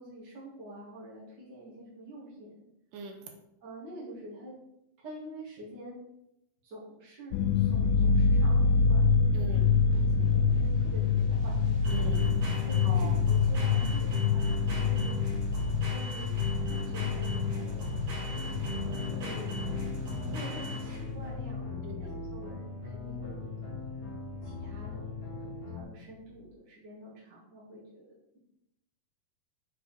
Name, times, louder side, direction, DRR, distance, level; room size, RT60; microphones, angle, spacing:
voice 1, 0.0-2.5 3.6-4.6 5.0-6.0 6.6-9.7 9.9-11.6 12.5-15.4 15.8-18.0 18.3-19.6 20.2-23.8 24.4-28.4, right 1 dB, 35° right, -8 dB, 1.7 m, -47 dB
voice 2, 2.9-3.2 9.3-9.7 11.9-12.3 12.9-13.2 21.8-22.2, right 3 dB, 80° right, 3 dB, 1.9 m, -41 dB
sound 1, 7.3-22.4 22.7-23.8 24.1-24.2 24.6-25.2, left 5 dB, 85° left, 2.2 m, -27 dB
sound 2, 9.6-21.2, left 1 dB, 55° right, 1.3 m, -38 dB
sound 3, 18.2-25.8, left 3 dB, 35° left, 2.4 m, -41 dB
6.9 x 5.0 x 4.2 m, 0.85 s
omnidirectional pair, 4.7 m